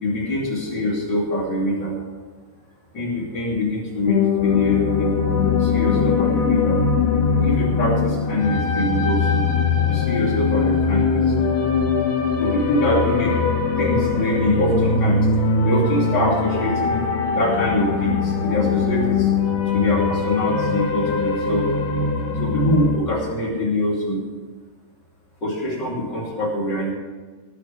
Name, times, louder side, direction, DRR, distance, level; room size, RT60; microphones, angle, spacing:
voice 1, 0.0-1.9 2.9-5.1 5.6-6.8 7.4-9.5 9.9-11.5 12.4-13.3 13.8-17.0 17.3-19.4 19.6-21.7 22.4-24.2 25.4-26.9, left 1 dB, 30° left, -4 dB, 2.6 m, -24 dB
sound 1, 4.1-23.0, left 5 dB, 65° left, 3.0 m, -21 dB
18.5 x 11.0 x 3.5 m, 1.4 s
omnidirectional pair, 5.6 m